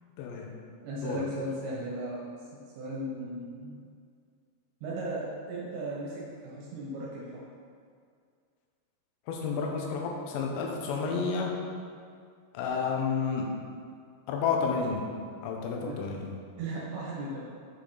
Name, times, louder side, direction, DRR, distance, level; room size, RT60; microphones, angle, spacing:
voice 1, 0.2-0.5 1.0-1.3 9.3-11.6 12.5-13.5 14.3-15.1 15.4-16.3, left 5 dB, 80° left, 0 dB, 3.1 m, -31 dB
voice 2, 0.8-2.3 2.8-3.8 4.8-7.4 15.8-16.1 16.6-17.4, right 1 dB, 80° right, -5 dB, 3.2 m, -36 dB
8.1 x 6.5 x 3.9 m, 2.2 s
omnidirectional pair, 5.0 m